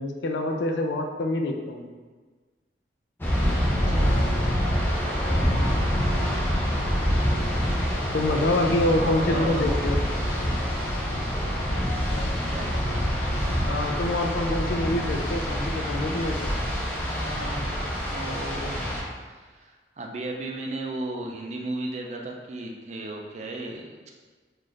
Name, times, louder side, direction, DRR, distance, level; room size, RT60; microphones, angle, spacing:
voice 1, 0.0-1.9 8.1-10.0 13.7-16.5, left 1 dB, 85° left, 3 dB, 0.4 m, -26 dB
sound 1, 3.2-19.0, equal, 10° left, 0.6 m, -26 dB
voice 2, 3.7-4.3 8.6-8.7 9.0-9.6 12.5-12.7 16.9-18.9 19.3-24.1, right 2 dB, 40° right, 1 dB, 0.4 m, -35 dB
3.1 x 2.5 x 3.8 m, 1.4 s
head